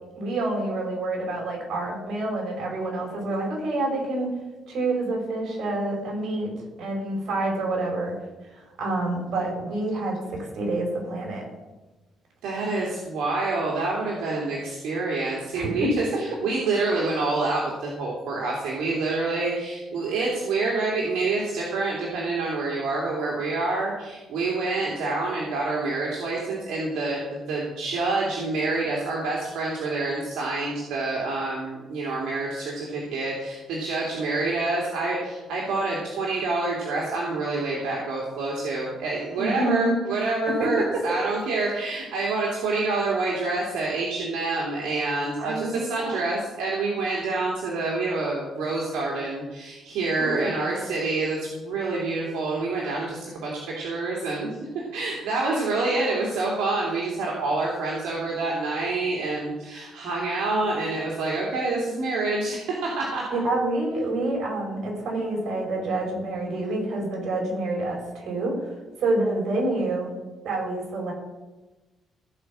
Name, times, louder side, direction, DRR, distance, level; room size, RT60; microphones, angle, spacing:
voice 1, 0.2-4.3 4.7-6.5 6.8-8.1 8.4-11.5 15.6-16.2 39.4-39.9 40.6-40.8 45.4-46.2 50.2-50.5 63.3-70.1 70.4-71.1, right 2 dB, 70° right, 0 dB, 5.3 m, -27 dB
voice 2, 12.4-63.3, right 3 dB, 85° right, -3 dB, 2.9 m, -27 dB
16.0 x 5.6 x 7.6 m, 1.1 s
cardioid pair, 90°, 0 cm